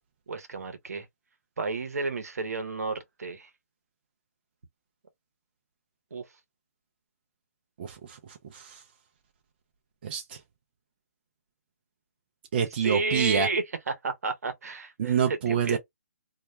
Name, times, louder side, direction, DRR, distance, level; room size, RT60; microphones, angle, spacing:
voice 1, 0.3-1.1 1.6-3.5 6.1-6.3 12.8-15.8, right 3 dB, 80° right, 0.9 m, -31 dB
voice 2, 7.8-8.2 8.5-8.8 10.0-10.4 12.5-13.5 15.0-15.8, right 7 dB, 40° right, 0.5 m, -27 dB
2.3 x 2.1 x 3.0 m
hypercardioid pair, 160°, 8 cm